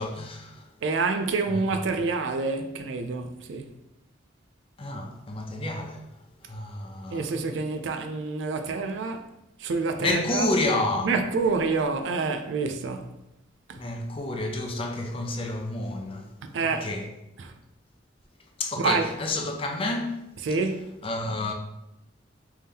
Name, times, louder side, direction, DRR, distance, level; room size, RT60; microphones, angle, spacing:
voice 1, 0.0-0.6 1.5-1.6 4.8-6.0 6.5-7.3 10.0-11.1 13.8-16.3 16.6-17.1 18.6-20.2 21.0-21.5, left 2 dB, 30° left, 0.5 m, -29 dB
voice 2, 0.8-3.7 7.1-9.3 9.6-10.5 11.0-13.1 13.7-13.8 16.5-16.9 17.4-17.5 18.8-19.1 20.4-21.0, right 4 dB, 75° right, 0.4 m, -27 dB
3.5 x 2.8 x 3.4 m
head